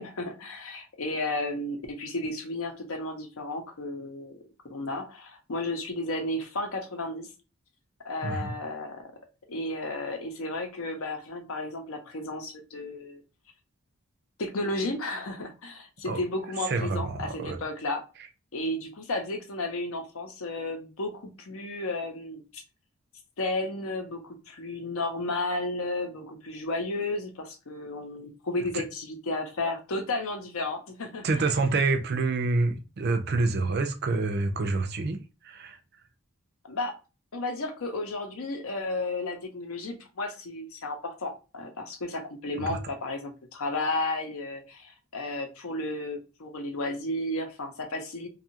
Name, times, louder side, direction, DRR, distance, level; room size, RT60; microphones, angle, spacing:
voice 1, 0.0-4.4 4.7-7.3 8.0-9.1 9.5-13.2 14.4-18.0 18.5-22.6 23.4-31.4 36.6-36.9 37.3-48.3, left 2 dB, 75° left, 0.7 m, -33 dB
voice 2, 8.2-8.5 16.1-16.2 16.7-17.6 28.7-28.8 31.2-35.8 42.6-42.8, right 3 dB, 45° right, 0.4 m, -27 dB
2.6 x 2.3 x 2.8 m
head